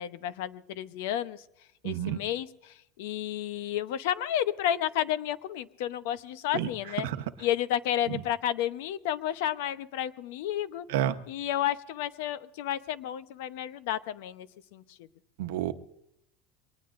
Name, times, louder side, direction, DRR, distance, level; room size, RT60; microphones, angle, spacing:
voice 1, 0.0-1.4 1.8-7.1 7.4-10.9 11.3-14.8, left 11 dB, 70° left, 13 dB, 0.8 m, -31 dB
voice 2, 1.8-2.2 6.5-6.7 7.0-7.2 8.1-8.2 10.9-11.2 15.4-15.7, right 11 dB, 80° right, 9 dB, 1.0 m, -29 dB
23.5 x 19.0 x 2.6 m, 0.78 s
supercardioid pair, 160°, 0 cm